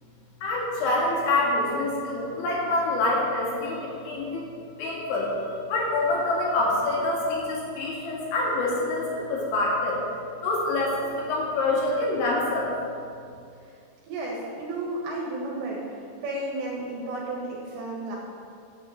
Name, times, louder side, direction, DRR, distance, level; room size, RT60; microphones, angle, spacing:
voice 1, 0.4-4.5 4.8-5.3 5.7-10.0 10.4-12.7, left 2 dB, 85° left, -4 dB, 4.8 m, -26 dB
voice 2, 14.1-18.2, right 2 dB, 70° right, -3 dB, 3.7 m, -33 dB
9.4 x 8.7 x 7.8 m, 2.4 s
omnidirectional pair, 5.2 m